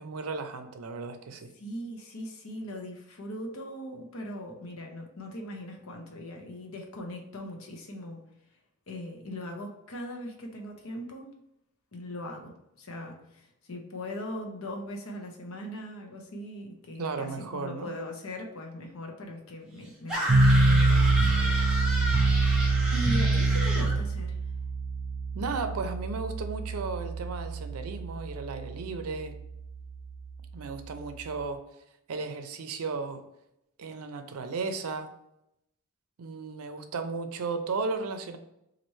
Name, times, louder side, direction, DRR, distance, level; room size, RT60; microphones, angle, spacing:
voice 1, 0.0-1.5 17.0-17.9 25.3-29.3 30.5-31.6 32.1-33.2 33.8-35.1 36.2-38.4, right 4 dB, 85° right, 7 dB, 0.5 m, -35 dB
voice 2, 1.5-8.2 8.9-11.3 11.9-22.3 22.9-24.4, equal, 70° left, 2 dB, 0.8 m, -40 dB
sound 1, 20.1-24.0, equal, 5° right, 1.0 m, -32 dB
sound 2, 20.3-31.4, right 2 dB, 35° right, 0.5 m, -26 dB
3.1 x 2.5 x 4.2 m, 0.81 s
head